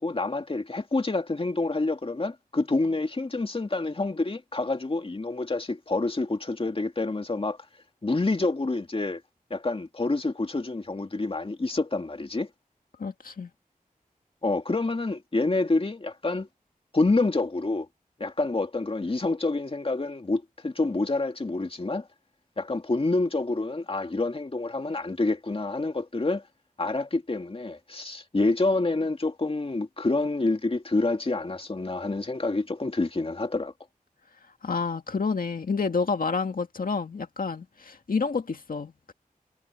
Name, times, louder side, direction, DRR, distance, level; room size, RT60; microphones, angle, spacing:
voice 1, 0.0-7.6 8.0-9.2 9.5-12.5 14.4-16.5 16.9-17.9 18.2-22.1 22.6-26.4 26.8-33.7, left 2 dB, 40° left, 2.3 m, -27 dB
voice 2, 13.0-13.5 34.6-39.1, left 4 dB, 75° left, 2.0 m, -29 dB
wide cardioid pair, 80°, 15 cm